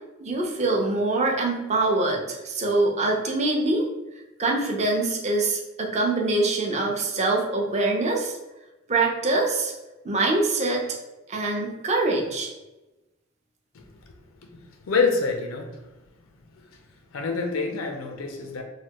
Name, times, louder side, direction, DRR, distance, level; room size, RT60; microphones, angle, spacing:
voice 1, 0.2-3.8 4.4-8.3 8.9-9.7 10.0-10.9 11.3-12.5, right 2 dB, 35° right, 0 dB, 0.5 m, -24 dB
voice 2, 14.5-15.7 16.6-16.7 17.1-18.6, left 4 dB, 80° left, 4 dB, 0.4 m, -26 dB
3.2 x 2.1 x 2.8 m, 1.0 s
head